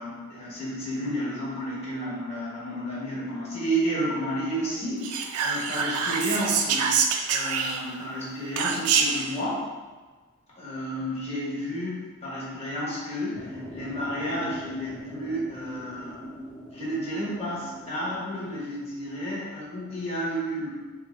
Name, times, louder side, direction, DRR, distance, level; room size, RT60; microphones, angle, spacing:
voice 1, 0.0-7.0 7.3-9.6 10.6-16.2 16.7-20.7, equal, 30° left, -7 dB, 1.2 m, -31 dB
Whispering, 5.0-8.0 8.6-9.3, right 6 dB, 80° right, 0.4 m, -25 dB
sound 1, 13.3-18.9, equal, 5° left, 0.4 m, -41 dB
4.2 x 2.5 x 3.2 m, 1.3 s
head